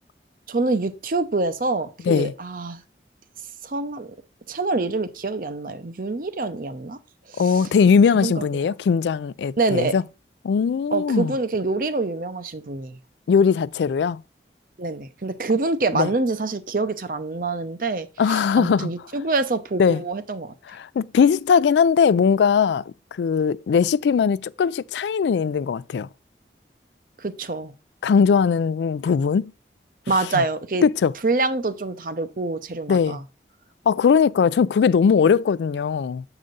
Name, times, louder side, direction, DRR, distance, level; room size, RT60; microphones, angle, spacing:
voice 1, 0.5-2.8 3.6-4.1 4.5-7.0 7.3-7.7 8.2-8.4 9.6-9.9 10.9-13.0 14.8-20.5 27.2-27.7 30.1-30.9 31.2-33.2, right 3 dB, 50° right, 0.6 m, -26 dB
voice 2, 7.4-10.0 10.4-11.3 13.3-14.2 16.0-16.1 18.2-18.9 19.8-20.0 20.8-22.8 23.2-26.1 28.0-29.5 30.3-30.4 30.8-31.1 32.9-33.2 33.9-36.2, left 6 dB, 85° left, 0.3 m, -19 dB
7.7 x 4.9 x 3.9 m
head